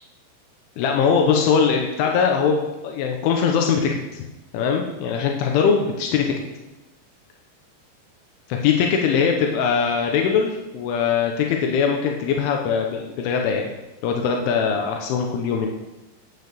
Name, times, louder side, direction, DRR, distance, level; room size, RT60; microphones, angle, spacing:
voice 1, 0.8-4.2 4.5-6.3 8.6-13.7 14.0-15.7, left 6 dB, 85° left, 2 dB, 3.5 m, -21 dB
9.5 x 8.7 x 6.7 m, 1.0 s
omnidirectional pair, 5.5 m